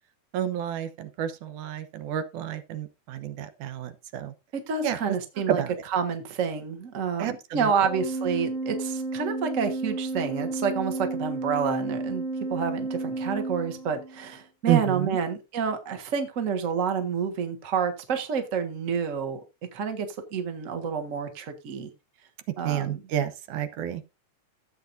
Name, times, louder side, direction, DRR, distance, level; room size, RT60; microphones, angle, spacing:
voice 1, 0.3-4.3 4.8-5.0 5.5-5.7 7.2-7.7 14.7-15.2 22.6-24.0, right 11 dB, 85° right, 2.5 m, -29 dB
voice 2, 4.5-5.6 5.9-12.2 12.5-19.4 19.7-20.1 20.3-21.9 22.6-23.0, right 6 dB, 35° right, 1.4 m, -29 dB
Organ, 7.8-14.3, right 3 dB, 55° right, 0.7 m, -32 dB
14.5 x 8.0 x 2.6 m
omnidirectional pair, 3.4 m